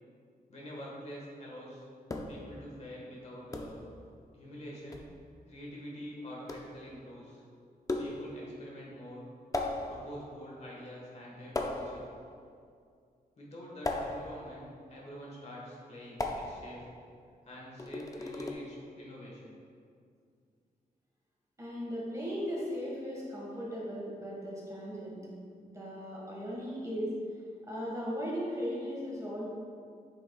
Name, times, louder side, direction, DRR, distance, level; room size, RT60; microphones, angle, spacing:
voice 1, 0.5-1.8 2.3-3.8 4.3-5.1 5.5-7.4 8.0-9.2 9.8-12.0 13.4-16.8 17.4-19.6, equal, 45° left, -4 dB, 1.5 m, -46 dB
sound 1, 2.1-2.5 3.5-3.9 4.9-5.1 6.5-6.8 7.9-8.4 9.5-10.2 11.5-12.2 13.8-14.5 16.2-16.8 17.8-18.5, left 2 dB, 20° left, 0.4 m, -36 dB
voice 2, 21.6-25.2 25.7-27.1 27.6-29.4, equal, 20° right, -6 dB, 1.6 m, -37 dB
8.4 x 6.8 x 2.4 m, 2.3 s
wide cardioid pair, 170°, 16 cm